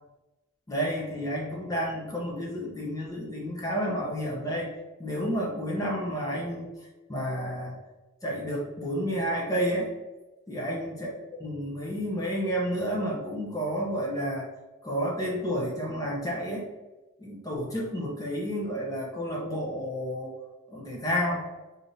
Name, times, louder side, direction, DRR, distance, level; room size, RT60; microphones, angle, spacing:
voice 1, 0.7-4.7 5.0-6.7 7.1-7.8 8.2-9.9 10.5-11.1 11.4-14.5 14.8-16.7 17.2-20.3 20.7-21.5, equal, 15° left, -3 dB, 0.7 m, -30 dB
4.0 x 3.4 x 2.6 m, 1.1 s
head